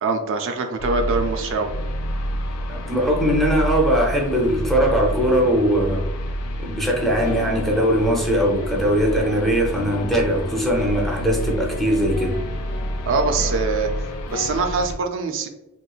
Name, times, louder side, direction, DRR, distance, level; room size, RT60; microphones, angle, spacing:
voice 1, 0.0-1.7 13.0-15.5, right 4 dB, 60° right, 5 dB, 0.4 m, -23 dB
sound 1, 0.8-15.0, equal, 80° left, 0.4 m, -29 dB
voice 2, 2.7-6.1 6.6-12.4, equal, ahead, -2 dB, 0.5 m, -20 dB
sound 2, 6.9-14.6, left 3 dB, 40° left, 1.0 m, -38 dB
3.0 x 2.9 x 2.3 m, 0.95 s
head